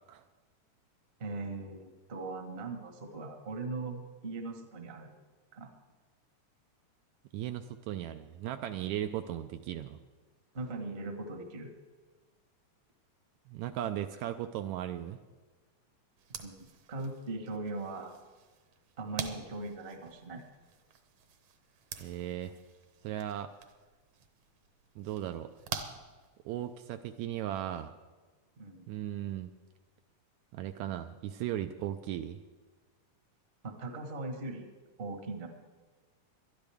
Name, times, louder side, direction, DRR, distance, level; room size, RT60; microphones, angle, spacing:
voice 1, 1.2-5.1 5.5-5.7 10.5-11.7 16.4-18.1 19.0-20.4 28.6-28.9 33.6-34.7 35.0-35.5, right 3 dB, 40° right, 4 dB, 0.9 m, -40 dB
voice 2, 7.3-10.0 13.5-15.2 22.0-22.5 23.0-23.5 25.0-25.5 26.5-27.9 28.9-29.5 30.5-32.4, right 11 dB, 80° right, 8 dB, 1.7 m, -37 dB
sound 1, 16.2-26.8, right 7 dB, 65° right, 1.7 m, -47 dB
20.5 x 12.0 x 3.5 m, 1.4 s
omnidirectional pair, 3.5 m